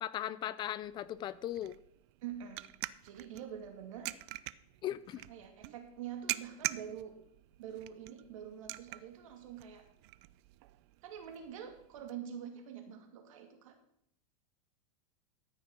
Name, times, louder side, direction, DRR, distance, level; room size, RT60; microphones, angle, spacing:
voice 1, 0.0-1.8 4.8-5.2, left 12 dB, 25° left, 17 dB, 0.4 m, -38 dB
sound 1, 0.8-12.1, right 18 dB, 55° right, 0.5 m, -45 dB
voice 2, 2.2-2.6 3.0-4.1 5.3-7.1 7.6-9.8 11.0-13.8, right 9 dB, 75° right, 5 dB, 2.7 m, -45 dB
13.5 x 6.3 x 6.2 m, 0.70 s
supercardioid pair, 140°, 17 cm